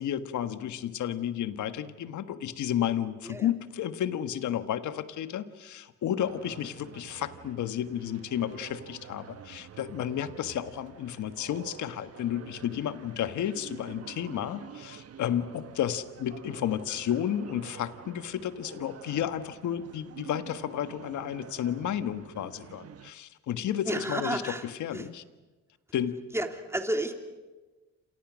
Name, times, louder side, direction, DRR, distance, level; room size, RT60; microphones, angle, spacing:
voice 1, 0.0-25.2 25.9-26.2, left 10 dB, 75° left, 11 dB, 1.6 m, -32 dB
sound 1, 6.2-23.1, right 8 dB, 55° right, 1.3 m, -48 dB
voice 2, 23.9-25.1 26.3-27.1, right 1 dB, 10° right, 5 dB, 3.3 m, -32 dB
30.0 x 27.5 x 6.3 m, 1.2 s
cardioid pair, 90°, 30 cm